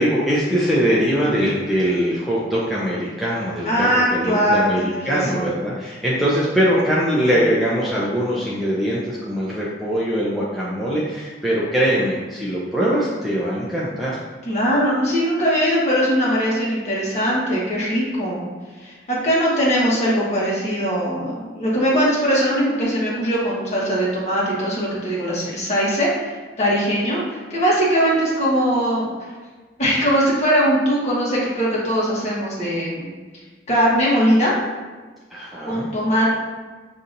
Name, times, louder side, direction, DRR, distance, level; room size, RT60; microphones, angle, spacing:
voice 1, 0.0-14.2 35.3-35.9, equal, ahead, -8 dB, 0.5 m, -22 dB
voice 2, 3.6-5.5 14.4-18.4 18.8-29.1 29.8-33.1 33.7-34.5 35.7-36.3, equal, 40° left, -6 dB, 1.2 m, -20 dB
6.6 x 2.7 x 2.5 m, 1.4 s
head